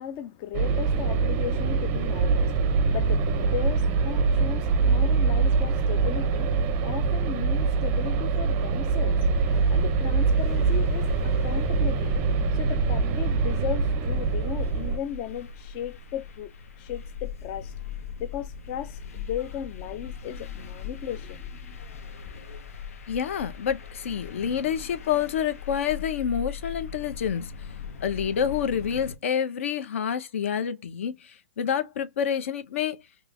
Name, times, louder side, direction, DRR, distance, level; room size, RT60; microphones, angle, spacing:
voice 1, 0.0-12.2 12.5-16.5 16.8-17.7 18.2-21.8 22.2-22.4, left 10 dB, 25° left, 0.3 m, -36 dB
sound 1, 0.5-15.0, right 4 dB, 25° right, 0.5 m, -24 dB
sound 2, 9.3-29.2, left 6 dB, 80° left, 1.2 m, -39 dB
voice 2, 23.1-27.5 28.0-33.0, left 8 dB, 60° left, 0.9 m, -28 dB
5.3 x 3.1 x 2.5 m
hypercardioid pair, 160°, 8 cm